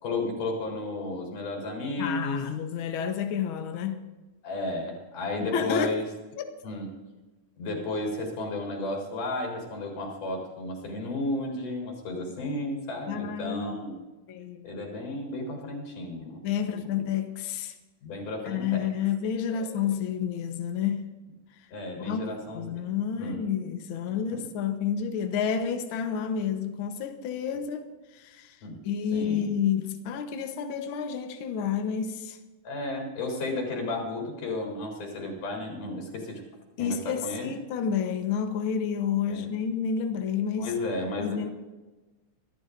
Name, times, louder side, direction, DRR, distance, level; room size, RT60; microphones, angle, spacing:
voice 1, 0.0-2.4 4.4-6.1 6.6-6.9 7.6-13.9 14.6-17.1 18.0-18.9 19.5-19.8 21.7-22.8 23.2-23.4 24.3-24.5 28.6-28.8 29.1-29.6 32.6-36.4 36.8-37.5 39.3-39.5 40.6-41.5, left 2 dB, 80° left, 5.6 m, -33 dB
voice 2, 2.0-4.0 5.4-5.9 6.4-6.5 13.1-13.8 14.3-14.7 16.4-17.7 18.4-21.0 22.0-22.2 22.5-27.9 28.1-28.6 28.8-32.4 36.8-40.7 41.2-41.5, left 7 dB, 60° left, 1.4 m, -30 dB
25.0 x 14.0 x 2.6 m
omnidirectional pair, 3.6 m